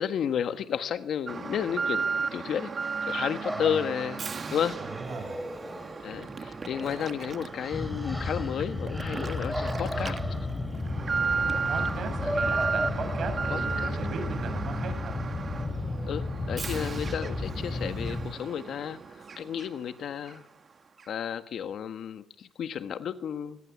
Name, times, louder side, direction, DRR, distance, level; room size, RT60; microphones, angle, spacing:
voice 1, 0.0-2.1 2.3-2.7 3.1-4.2 4.5-4.9 6.0-10.2 12.2-12.4 13.5-14.0 16.1-20.4 21.1-23.6, left 8 dB, 65° left, 9 dB, 1.6 m, -32 dB
Alarm, 1.3-19.9 20.3-20.4 21.0-21.1, right 5 dB, 40° right, 1.5 m, -35 dB
sound 1, 2.8-13.9, equal, ahead, 4.0 m, -38 dB
voice 2, 5.0-5.4 9.9-10.3 11.7-15.2, right 5 dB, 65° right, 7 dB, 8.0 m, -37 dB
sound 2, 7.7-18.3, left 2 dB, 25° left, 7.8 m, -33 dB
26.0 x 21.0 x 8.7 m, 0.92 s
cardioid pair, 90°, 0 cm